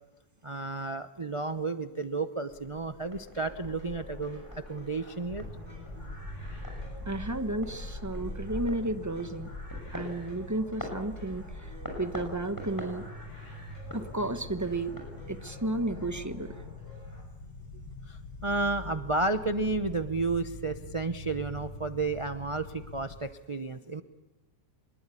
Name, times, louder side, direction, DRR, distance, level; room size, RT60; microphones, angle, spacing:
voice 1, 0.4-5.5 18.1-24.0, right 3 dB, 30° right, 8 dB, 0.6 m, -32 dB
sound 1, 2.5-15.3, left 1 dB, 10° left, 6.4 m, -43 dB
sound 2, 3.3-17.2, equal, 40° left, 7.4 m, -53 dB
sound 3, 5.2-23.2, left 2 dB, 60° left, 2.3 m, -45 dB
voice 2, 7.0-9.5 9.9-13.1 13.9-15.0 15.3-16.6, right 2 dB, 10° right, 8 dB, 1.1 m, -33 dB
25.0 x 21.5 x 8.5 m, 1.0 s
omnidirectional pair, 1.8 m